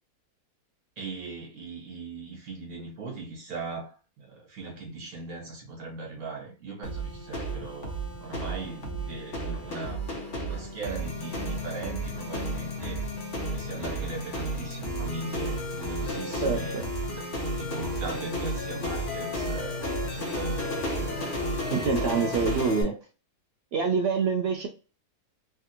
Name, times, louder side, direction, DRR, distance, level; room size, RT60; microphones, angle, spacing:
voice 1, 1.0-7.9 8.2-10.0 10.4-13.1 13.5-17.3 17.6-21.3 21.9-22.3, right 3 dB, 65° right, 1.7 m, -39 dB
sound 1, 6.8-22.8, equal, 45° left, 0.8 m, -32 dB
voice 2, 16.4-16.8 21.7-22.9 23.7-24.7, right 5 dB, 90° right, 0.5 m, -26 dB
3.4 x 2.4 x 2.7 m
omnidirectional pair, 1.6 m